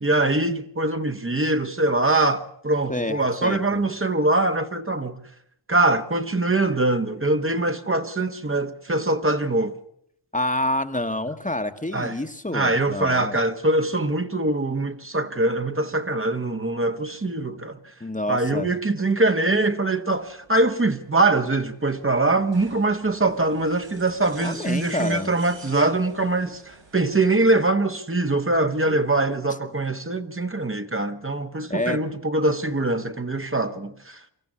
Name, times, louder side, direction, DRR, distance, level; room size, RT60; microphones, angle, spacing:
voice 1, 0.0-5.2 5.7-9.7 11.9-12.2 12.5-17.8 18.3-34.2, right 2 dB, 30° right, 1.3 m, -23 dB
voice 2, 2.9-3.8 10.3-13.4 18.0-18.7 24.4-25.3 31.7-32.0, left 1 dB, 20° left, 1.3 m, -28 dB
sound 1, 20.1-27.7, right 3 dB, 90° right, 5.0 m, -49 dB
24.5 x 14.0 x 9.7 m
wide cardioid pair, 70°, 43 cm